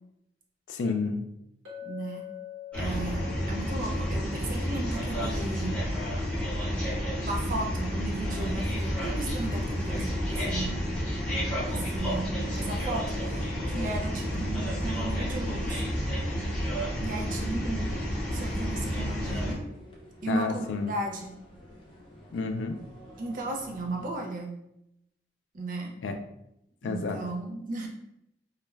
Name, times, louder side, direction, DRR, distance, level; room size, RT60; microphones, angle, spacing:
voice 1, 0.7-1.2 20.3-21.0 22.3-22.8 26.0-26.2 26.8-27.2, left 4 dB, 85° left, 6 dB, 0.4 m, -30 dB
Chink clink, 1.6-5.8, left 11 dB, 75° right, 1.0 m, -45 dB
voice 2, 1.8-2.2 2.7-5.8 7.2-10.8 11.7-12.3 12.6-15.9 17.0-18.0 18.3-19.6 20.2-21.3 23.2-24.6 25.5-25.9 26.8-27.9, right 2 dB, 50° right, 1 dB, 0.5 m, -35 dB
sound 1, 2.7-19.5, equal, 5° left, 0.9 m, -30 dB
sound 2, 4.4-24.1, right 1 dB, 30° left, 0.6 m, -47 dB
2.4 x 2.2 x 3.1 m, 0.82 s
head